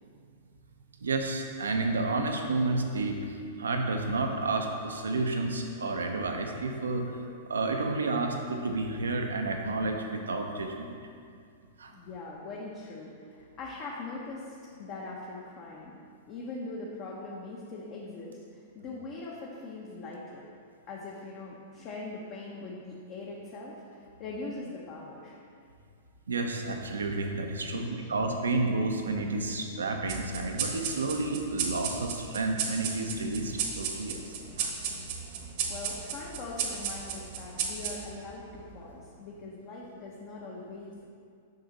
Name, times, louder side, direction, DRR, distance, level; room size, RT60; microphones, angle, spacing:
voice 1, 1.0-7.2 7.5-11.0 11.8-11.9 26.3-34.7, right 3 dB, 85° right, 3 dB, 0.8 m, -31 dB
voice 2, 11.9-16.0 16.3-20.5 20.9-25.4 27.7-28.1 35.7-41.1, left 3 dB, 45° left, -4 dB, 1.0 m, -41 dB
sound 1, 30.1-39.0, right 6 dB, 55° right, 1.0 m, -35 dB
6.7 x 5.8 x 4.1 m, 2.3 s
hypercardioid pair, 110°, 0 cm